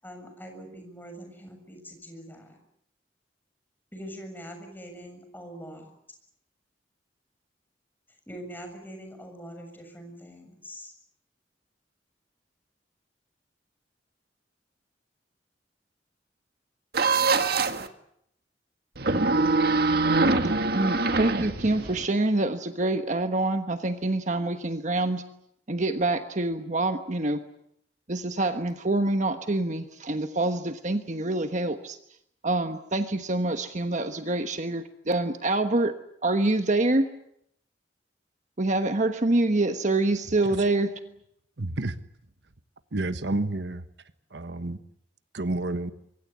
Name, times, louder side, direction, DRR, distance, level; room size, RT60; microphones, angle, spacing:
voice 1, 0.0-2.6 3.9-5.9 8.3-10.9, equal, 10° left, 4 dB, 7.0 m, -43 dB
sound 1, 16.9-17.9 19.0-22.1, right 3 dB, 60° right, 1.8 m, -24 dB
voice 2, 20.2-25.2 25.7-27.4 28.1-32.0 32.4-35.9 36.2-37.1 38.6-40.9, right 2 dB, 45° right, 8 dB, 1.3 m, -26 dB
voice 3, 41.6-41.9 42.9-43.8 44.3-44.8 45.3-45.9, right 2 dB, 75° right, 11 dB, 1.3 m, -29 dB
24.5 x 24.0 x 8.3 m, 0.75 s
head